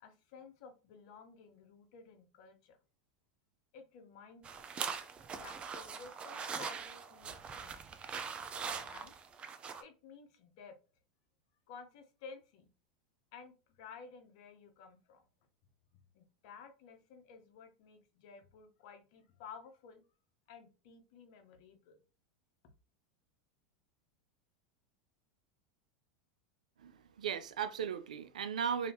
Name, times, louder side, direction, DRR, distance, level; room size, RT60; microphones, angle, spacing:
voice 1, 0.0-2.8 3.7-4.7 5.3-7.8 8.6-9.2 9.8-10.8 11.7-12.7 13.3-15.2 16.1-20.0 20.5-22.0, left 5 dB, 60° left, 0.9 m, -54 dB
sound 1, 4.4-9.8, right 6 dB, 30° right, 0.5 m, -42 dB
voice 2, 26.8-28.9, right 7 dB, 85° right, 0.4 m, -37 dB
2.8 x 2.7 x 3.4 m
hypercardioid pair, 95°, 4 cm